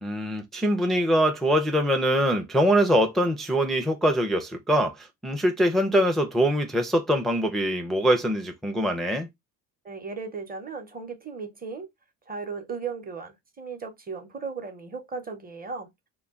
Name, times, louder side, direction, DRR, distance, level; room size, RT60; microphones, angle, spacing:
voice 1, 0.0-9.3, equal, ahead, 0.4 m, -23 dB
voice 2, 9.8-11.9 12.3-15.9, right 5 dB, 25° right, 0.8 m, -36 dB
2.2 x 2.2 x 3.5 m
cardioid pair, 105°, 37 cm